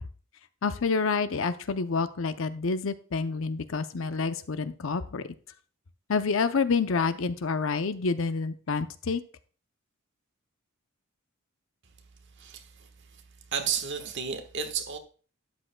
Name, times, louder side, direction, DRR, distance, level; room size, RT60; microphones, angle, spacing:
voice 1, 0.6-5.2 6.1-9.2, left 4 dB, 60° left, 0.6 m, -28 dB
voice 2, 13.5-15.0, right 7 dB, 55° right, 1.3 m, -31 dB
12.0 x 8.7 x 2.2 m
head